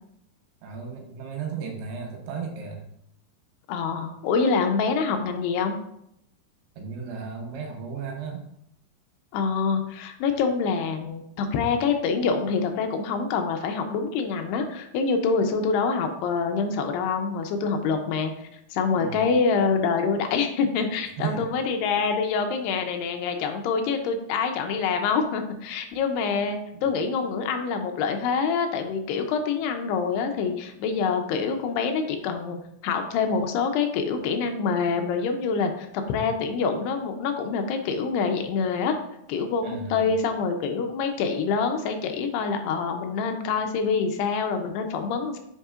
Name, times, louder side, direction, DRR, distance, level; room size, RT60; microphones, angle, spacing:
voice 1, 0.6-2.9 6.8-8.4 18.9-19.3 21.2-21.4 26.7-26.8 39.6-40.1, right 6 dB, 75° right, 1 dB, 3.0 m, -34 dB
voice 2, 3.7-5.8 9.3-39.0 39.3-45.4, left 5 dB, 80° left, 5 dB, 2.7 m, -26 dB
8.1 x 5.6 x 2.4 m, 0.77 s
omnidirectional pair, 4.8 m